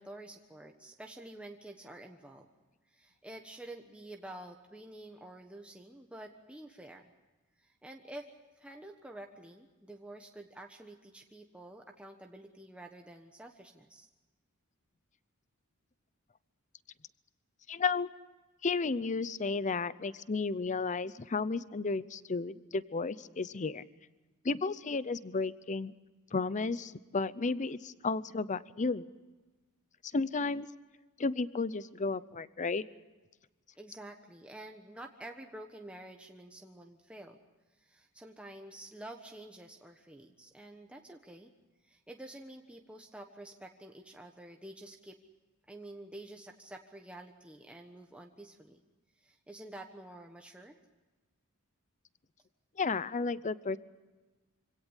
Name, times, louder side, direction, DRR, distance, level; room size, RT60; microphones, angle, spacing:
voice 1, 0.0-2.5 2.9-7.1 7.6-8.3 8.6-14.1 33.8-37.4 37.8-41.5 41.8-45.2 45.7-48.8 49.2-50.8, right 1 dB, 5° right, 2 dB, 1.2 m, -49 dB
voice 2, 17.7-18.1 18.6-23.8 24.4-25.9 26.3-29.1 30.1-30.7 31.2-32.8 52.8-53.8, left 4 dB, 35° left, 17 dB, 0.6 m, -33 dB
25.5 x 17.5 x 8.1 m, 1.2 s
head